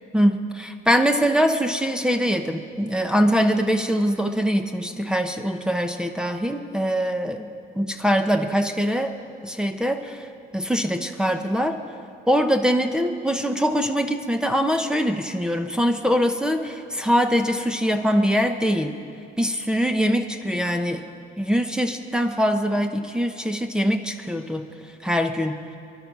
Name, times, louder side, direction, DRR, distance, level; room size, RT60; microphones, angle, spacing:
voice 1, 0.1-7.5 7.7-9.1 9.4-10.3 10.5-11.8 12.3-19.0 19.4-21.0 21.4-24.7 25.0-25.6, equal, 5° right, 7 dB, 0.8 m, -23 dB
23.5 x 11.5 x 5.4 m, 2.4 s
cardioid pair, 110°, 17 cm